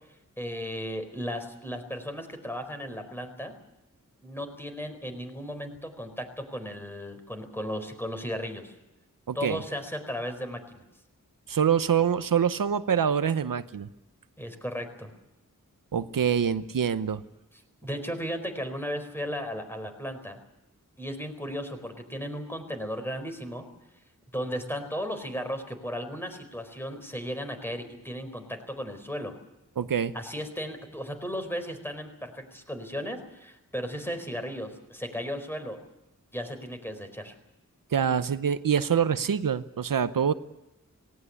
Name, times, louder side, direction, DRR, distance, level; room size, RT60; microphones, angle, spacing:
voice 1, 0.4-3.5 4.2-8.7 9.3-10.8 14.4-15.1 17.8-20.4 21.0-23.7 24.3-29.3 30.1-35.8 36.3-37.3, equal, 5° left, 6 dB, 4.4 m, -35 dB
voice 2, 9.3-9.6 11.5-13.9 15.9-17.2 29.8-30.1 37.9-40.3, right 8 dB, 85° right, 13 dB, 0.8 m, -25 dB
18.5 x 18.0 x 9.7 m, 0.95 s
wide cardioid pair, 60°, 32 cm